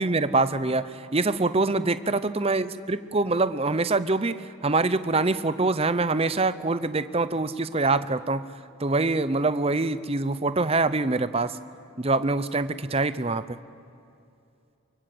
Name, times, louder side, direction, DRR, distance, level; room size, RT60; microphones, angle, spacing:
voice 1, 0.0-4.3 4.6-8.4 8.8-11.6 12.0-13.4, right 3 dB, 25° right, 13 dB, 0.7 m, -24 dB
24.5 x 24.0 x 7.8 m, 2.6 s
head